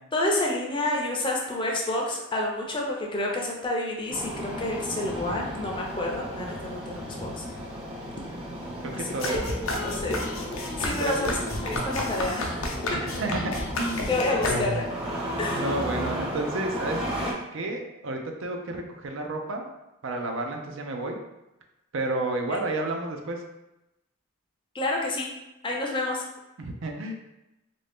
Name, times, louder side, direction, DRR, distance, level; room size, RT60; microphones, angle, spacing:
voice 1, 0.1-7.4 8.9-9.4 9.8-10.2 10.5-12.6 12.9-13.1 14.1-14.9 15.4-15.6 22.5-22.6 24.7-25.3 25.6-26.2, left 2 dB, 25° left, -1 dB, 0.5 m, -29 dB
Engine starting, 4.1-17.3, equal, 25° right, 0.7 m, -34 dB
voice 2, 8.8-9.5 11.0-11.2 12.9-14.1 15.5-17.0 17.5-19.7 20.0-21.2 21.9-23.4 26.6-27.1, right 2 dB, 65° right, 3 dB, 0.5 m, -31 dB
sound 1, 9.2-15.0, left 1 dB, 70° left, 0.6 m, -31 dB
3.2 x 2.6 x 3.4 m, 0.94 s
head